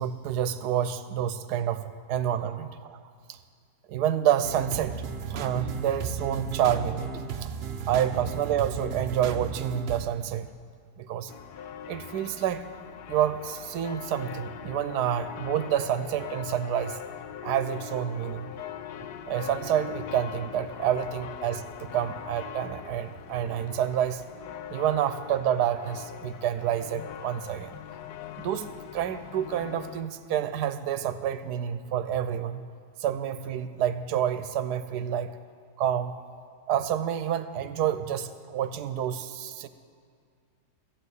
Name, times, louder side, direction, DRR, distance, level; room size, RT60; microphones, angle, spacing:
voice 1, 0.0-3.0 3.3-3.4 3.9-5.0 5.3-7.1 7.4-7.5 7.9-10.5 11.0-11.3 11.9-12.7 13.1-17.0 17.4-18.5 19.2-24.2 24.7-27.8 28.4-32.6 33.0-35.4 35.8-36.1 36.7-39.7, right 10 dB, 80° right, 12 dB, 1.2 m, -28 dB
sound 1, 4.4-10.1, right 6 dB, 60° right, 0.7 m, -35 dB
sound 2, 11.3-30.0, left 9 dB, 90° left, 1.2 m, -41 dB
14.5 x 8.2 x 8.2 m, 2.1 s
omnidirectional pair, 1.7 m